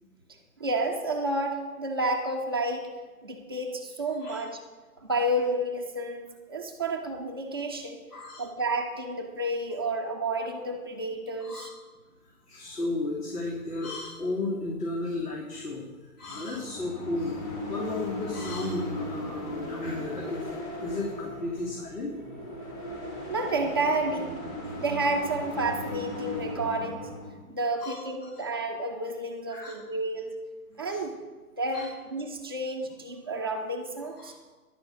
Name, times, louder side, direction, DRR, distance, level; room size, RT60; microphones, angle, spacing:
voice 1, 0.6-2.9 3.2-4.6 5.0-8.0 8.4-11.7 23.3-24.3 24.8-27.1 27.4-30.3 30.8-31.2 31.6-34.3, right 2 dB, 15° right, 1 dB, 0.7 m, -30 dB
voice 2, 8.1-8.4 11.4-11.7 12.5-15.8 16.2-17.4 17.7-22.5 27.8-28.4 29.5-29.7 30.9-31.0 31.7-31.9 34.2-34.3, left 2 dB, 75° left, -2 dB, 3.3 m, -34 dB
sound 1, 16.2-27.3, left 1 dB, 20° left, 3.4 m, -37 dB
11.0 x 9.2 x 6.2 m, 1.3 s
hypercardioid pair, 155°, 46 cm